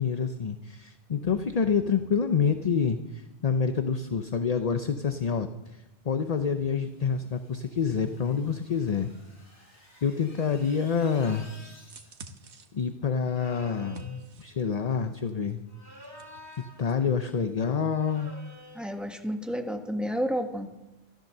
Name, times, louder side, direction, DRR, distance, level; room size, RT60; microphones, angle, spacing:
voice 1, 0.0-9.1 10.0-11.6 12.7-15.6 16.8-18.3, left 6 dB, 40° left, 8 dB, 0.7 m, -27 dB
sound 1, 6.4-12.4, left 1 dB, 90° left, 5.0 m, -57 dB
sound 2, 10.9-11.9 13.3-14.3 15.7-16.9 17.9-18.9, left 1 dB, 20° right, 2.1 m, -49 dB
sound 3, 11.9-14.8 15.3-17.0 17.2-17.4, right 2 dB, 80° right, 1.4 m, -49 dB
voice 2, 18.7-20.7, equal, ahead, 4 dB, 1.5 m, -31 dB
14.0 x 13.5 x 6.6 m, 0.95 s
omnidirectional pair, 1.2 m